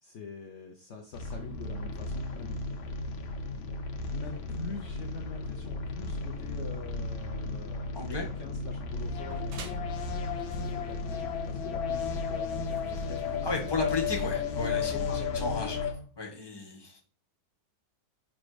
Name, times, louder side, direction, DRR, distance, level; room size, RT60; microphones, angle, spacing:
voice 1, 0.0-2.6 4.1-10.1 10.6-14.0 14.8-15.6, left 4 dB, 65° left, 1 dB, 0.7 m, -45 dB
sound 1, 1.1-15.9, left 4 dB, 80° left, 1.7 m, -34 dB
voice 2, 7.9-8.3 13.4-15.1 15.3-15.9 16.2-17.0, left 3 dB, 15° left, 2 dB, 1.1 m, -34 dB
sound 2, 9.0-14.3, right 3 dB, 80° right, 1.9 m, -50 dB
5.2 x 4.2 x 4.9 m, 0.44 s
omnidirectional pair, 2.1 m